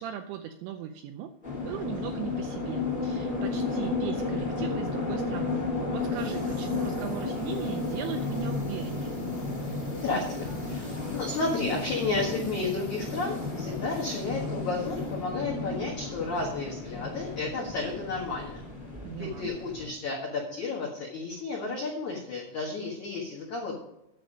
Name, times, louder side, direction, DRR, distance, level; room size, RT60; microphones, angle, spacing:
voice 1, 0.0-1.3 1.6-9.1 19.0-19.5, right 10 dB, 85° right, 6 dB, 2.7 m, -38 dB
sound 1, 1.4-19.9, left 3 dB, 30° left, 0.9 m, -33 dB
voice 2, 9.6-18.6 19.1-23.7, left 3 dB, 75° left, -3 dB, 1.7 m, -32 dB
10.5 x 7.1 x 5.0 m, 0.86 s
omnidirectional pair, 5.9 m